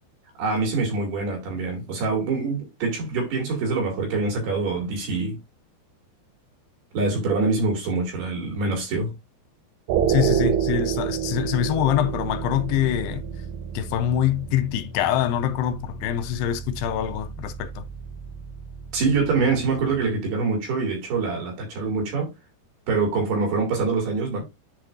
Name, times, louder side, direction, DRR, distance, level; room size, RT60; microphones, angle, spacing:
voice 1, 0.4-5.4 6.9-9.1 18.9-22.3 22.9-24.4, right 4 dB, 65° right, 4.1 m, -25 dB
sound 1, 9.9-20.1, right 8 dB, 85° right, 3.1 m, -29 dB
voice 2, 10.1-13.2 13.7-17.8, left 11 dB, 80° left, 2.5 m, -24 dB
10.5 x 4.2 x 2.5 m
omnidirectional pair, 5.1 m